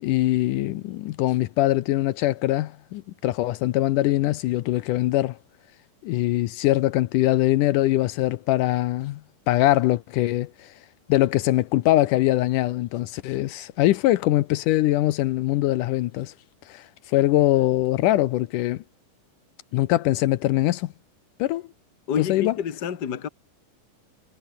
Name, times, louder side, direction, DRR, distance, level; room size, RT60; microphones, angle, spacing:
voice 1, 0.0-5.4 6.0-9.2 9.5-10.7 11.1-16.3 16.7-18.8 19.7-20.9 21.4-21.6 22.2-22.5, left 16 dB, 75° left, 2.2 m, -22 dB
voice 2, 22.1-23.3, left 8 dB, 35° left, 1.9 m, -28 dB
omnidirectional pair, 3.9 m